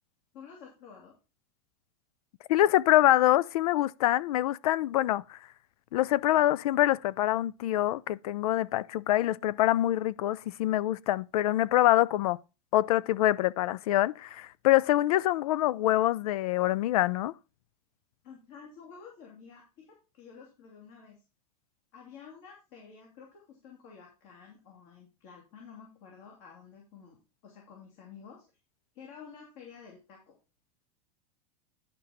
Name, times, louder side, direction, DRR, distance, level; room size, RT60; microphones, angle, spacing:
voice 1, 0.3-1.1 18.2-21.2 21.9-27.2 27.4-28.4 28.9-30.4, left 6 dB, 50° left, 2.9 m, -51 dB
voice 2, 2.5-5.4 5.9-12.4 12.7-17.3, left 14 dB, 70° left, 0.5 m, -25 dB
11.0 x 5.2 x 4.3 m
supercardioid pair, 150°, 19 cm